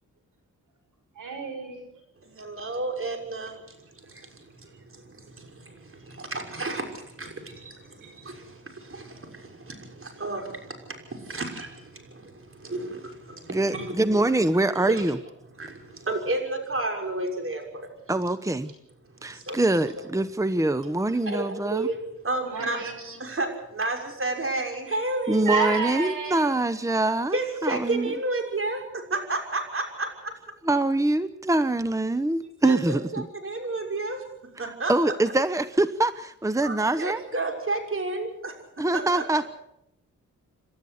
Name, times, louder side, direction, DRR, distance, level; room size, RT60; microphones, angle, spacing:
voice 1, 1.1-1.9 8.0-8.1 22.3-23.0 25.4-26.6, right 5 dB, 80° right, 6 dB, 6.1 m, -31 dB
voice 2, 2.2-14.2 14.9-15.2 15.6-17.9 19.0-19.6 21.2-25.8 27.3-30.3 32.4-34.2 34.6-35.1 36.6-39.4, right 2 dB, 45° right, 3 dB, 6.2 m, -32 dB
voice 3, 13.5-15.2 18.1-18.7 19.2-21.9 25.3-28.1 30.7-33.3 34.9-37.2 38.8-39.5, right 2 dB, 10° right, 12 dB, 1.0 m, -24 dB
29.0 x 12.5 x 8.2 m, 0.81 s
cardioid pair, 65°, 31 cm